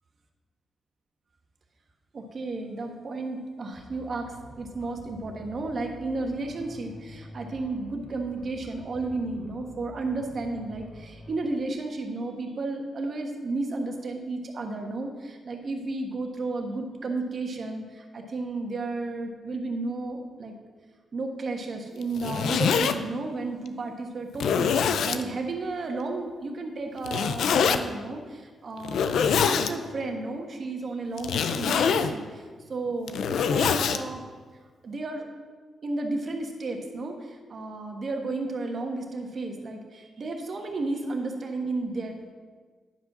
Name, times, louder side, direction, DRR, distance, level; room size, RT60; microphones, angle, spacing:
voice 1, 2.1-20.6 21.1-29.2 29.4-34.2 34.8-35.3 35.8-42.3, right 3 dB, 50° right, 3 dB, 1.4 m, -33 dB
sound 1, 3.7-11.3, left 1 dB, 45° left, 2.1 m, -47 dB
Zipper (clothing), 22.0-22.9 23.7-23.8 24.3-25.2 27.0-27.8 28.8-29.7 31.2-32.1 32.9-34.0, left 7 dB, 80° left, 0.5 m, -24 dB
10.0 x 5.3 x 6.1 m, 1.5 s
cardioid pair, 85°, 0 cm